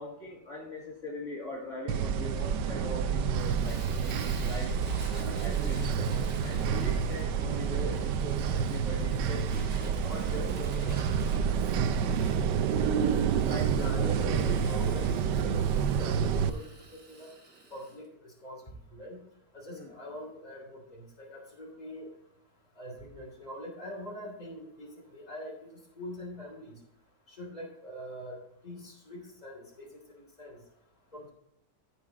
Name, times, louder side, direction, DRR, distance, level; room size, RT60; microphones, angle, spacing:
voice 1, 0.0-4.8 5.1-6.1 6.4-9.6 10.0-11.0 13.4-14.5 19.7-19.9, left 1 dB, 45° left, -4 dB, 2.7 m, -41 dB
sound 1, 1.9-16.5, right 7 dB, 85° right, 1.3 m, -28 dB
Fire, 3.3-18.0, right 3 dB, 40° right, 2.0 m, -50 dB
voice 2, 13.7-17.3 17.7-18.6 18.9-19.2 19.5-22.1 22.8-26.8 27.3-28.4 28.6-30.6 31.1-31.3, left 1 dB, 20° left, -1 dB, 3.1 m, -43 dB
15.0 x 5.1 x 4.0 m, 0.77 s
omnidirectional pair, 1.9 m